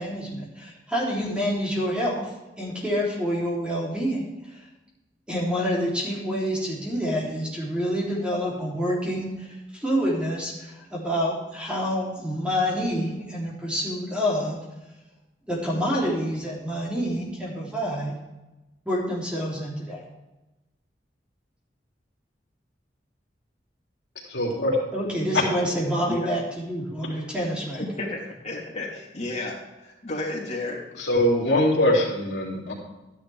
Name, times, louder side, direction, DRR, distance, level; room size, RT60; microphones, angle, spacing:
voice 1, 0.0-2.2 2.6-4.2 5.3-14.6 15.5-18.1 18.9-20.0 24.9-27.8, equal, 5° right, -5 dB, 3.3 m, -27 dB
voice 2, 24.3-24.8 31.0-32.7, left 1 dB, 75° left, -2 dB, 2.9 m, -22 dB
voice 3, 27.8-30.8, left 2 dB, 40° left, -3 dB, 3.1 m, -32 dB
12.5 x 10.5 x 3.5 m, 1.0 s
head